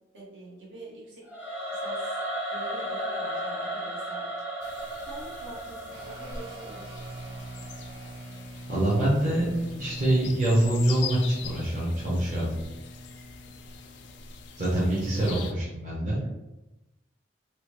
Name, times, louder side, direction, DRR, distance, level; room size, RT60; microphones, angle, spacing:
voice 1, 0.1-1.2 1.7-2.2 2.5-4.3 5.1-7.2 14.9-15.6, right 2 dB, 80° right, -5 dB, 1.0 m, -45 dB
Singing / Musical instrument, 1.3-8.4, equal, 10° right, 0.6 m, -35 dB
sound 1, 4.6-15.5, left 6 dB, 65° left, 0.3 m, -43 dB
sound 2, 5.9-15.5, right 2 dB, 60° right, 0.5 m, -43 dB
voice 2, 8.7-12.5 14.6-16.2, right 1 dB, 45° right, -8 dB, 0.8 m, -25 dB
2.9 x 2.1 x 3.0 m, 0.97 s
head